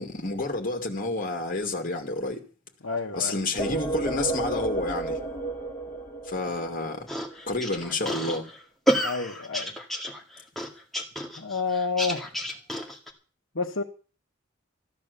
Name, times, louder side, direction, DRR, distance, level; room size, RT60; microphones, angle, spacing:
voice 1, 0.0-2.4 3.1-5.2 6.3-7.1 7.5-8.4, left 2 dB, 45° left, 2.4 m, -29 dB
voice 2, 2.8-3.4 9.0-9.7 11.4-12.3 13.5-13.8, left 4 dB, 75° left, 1.3 m, -29 dB
sound 1, 3.6-7.2, right 2 dB, 20° left, 4.6 m, -31 dB
sound 2, 7.1-13.1, right 1 dB, ahead, 2.1 m, -30 dB
14.5 x 10.5 x 6.8 m
head